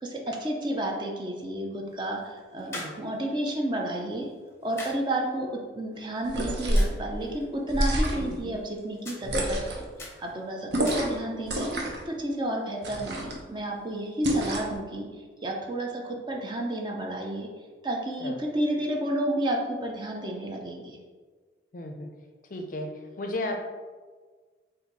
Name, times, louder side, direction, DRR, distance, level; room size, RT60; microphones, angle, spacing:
voice 1, 0.0-4.3 4.6-5.5 5.7-9.8 10.2-11.7 12.1-15.1 15.4-17.5 17.8-21.0, right 1 dB, 25° right, 0 dB, 0.5 m, -31 dB
sound 1, 1.5-11.5, left 2 dB, 15° left, 0.8 m, -47 dB
sound 2, 6.2-7.0 7.7-8.4 9.2-9.9 10.7-11.2 11.5-12.0 12.8-13.4 14.2-14.8, equal, 65° right, 0.7 m, -27 dB
voice 2, 8.2-8.6 18.2-18.4 21.7-22.1 22.5-22.9 23.2-23.6, left 1 dB, 45° left, 3 dB, 0.5 m, -34 dB
4.3 x 2.6 x 3.9 m, 1.4 s
head